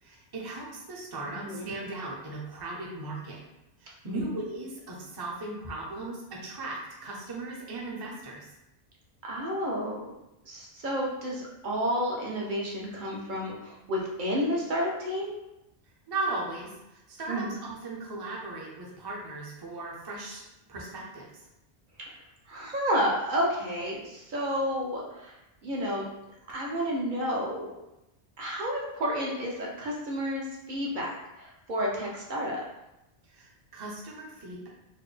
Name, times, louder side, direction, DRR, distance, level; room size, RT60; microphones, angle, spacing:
voice 1, 0.0-3.4 3.8-8.5 16.1-20.4 20.7-21.3 33.3-34.7, right 2 dB, 25° right, -3 dB, 0.5 m, -37 dB
voice 2, 9.2-10.0 10.4-15.3 17.3-17.6 22.5-25.4 25.6-26.1 26.5-27.7 28.4-31.1 31.3-32.6, equal, 55° right, -3 dB, 0.8 m, -31 dB
4.1 x 2.1 x 3.3 m, 0.90 s
omnidirectional pair, 1.1 m